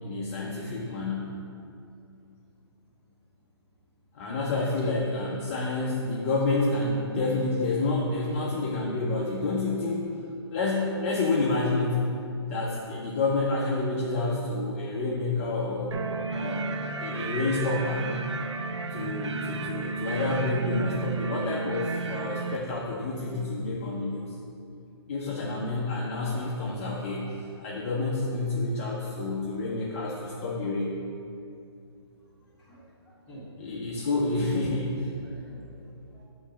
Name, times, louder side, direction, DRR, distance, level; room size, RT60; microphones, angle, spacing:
voice 1, 0.0-1.3 4.1-10.1 10.5-12.1 12.5-16.0 16.3-16.7 17.0-18.1 18.9-24.2 25.1-27.3 27.6-30.9 33.6-35.1, left 2 dB, 30° left, -4 dB, 0.5 m, -29 dB
sound 1, 15.9-22.6, right 4 dB, 85° right, 0.4 m, -33 dB
voice 2, 32.6-33.4 35.2-36.3, right 1 dB, 10° left, -9 dB, 1.2 m, -51 dB
6.4 x 3.1 x 5.7 m, 2.5 s
hypercardioid pair, 160°, 14 cm